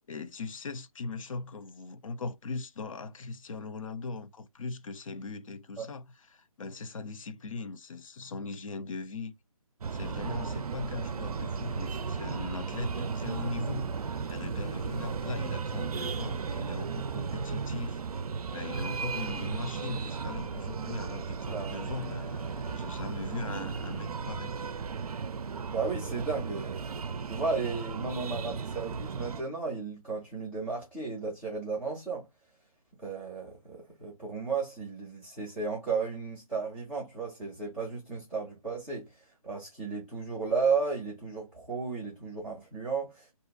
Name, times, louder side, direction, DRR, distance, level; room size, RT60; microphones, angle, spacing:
voice 1, 0.1-6.1 6.3-9.3 9.9-18.0 18.5-24.5, left 3 dB, 65° left, 0.5 m, -39 dB
Breathing, 9.8-29.4, right 5 dB, 80° right, 0.4 m, -35 dB
voice 2, 21.4-21.9 25.7-26.9 27.3-32.3 33.0-43.3, right 4 dB, 5° left, 0.3 m, -34 dB
2.6 x 2.2 x 3.8 m
figure-of-eight pair, 150°, 19 cm